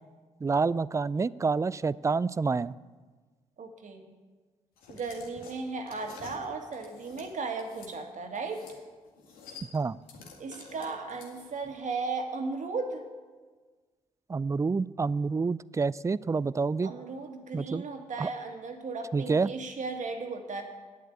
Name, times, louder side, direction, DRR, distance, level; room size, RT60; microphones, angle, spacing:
voice 1, 0.4-2.7 9.7-10.0 14.3-16.9 17.5-17.8 18.2-18.3 19.1-19.5, right 4 dB, 20° right, 20 dB, 0.4 m, -28 dB
voice 2, 3.6-4.1 4.9-8.7 10.4-13.0 16.8-20.6, right 4 dB, 55° right, 5 dB, 1.9 m, -36 dB
sound 1, 4.8-7.9 8.3-8.8 9.0-11.7, left 5 dB, 75° left, 2.0 m, -49 dB
9.3 x 8.1 x 8.5 m, 1.4 s
hypercardioid pair, 45°, 15 cm